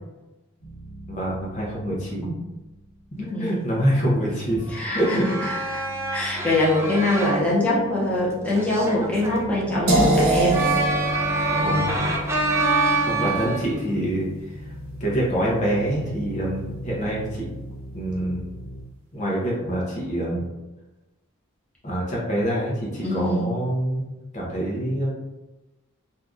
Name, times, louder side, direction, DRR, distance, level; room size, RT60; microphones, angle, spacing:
sound 1, 0.6-3.4 3.7-18.8, right 1 dB, 60° left, 1.3 m, -41 dB
voice 1, 1.1-2.3 3.2-4.7 4.9-5.4 11.5-12.0 13.0-14.3 15.0-17.5 17.9-18.5 19.1-20.5 21.8-24.0 24.3-25.1, right 1 dB, 35° left, -5 dB, 0.8 m, -25 dB
voice 2, 3.1-3.7 4.7-5.8 6.1-10.7 11.5-12.0 13.2-13.3 23.0-23.5, left 1 dB, 5° left, -7 dB, 0.8 m, -24 dB
sound 2, 4.6-7.4 8.6-9.5 10.5-13.7, right 3 dB, 15° right, 0.4 m, -26 dB
sound 3, 9.9-15.8, right 1 dB, 90° right, 0.9 m, -26 dB
2.7 x 2.4 x 3.5 m, 1.1 s
head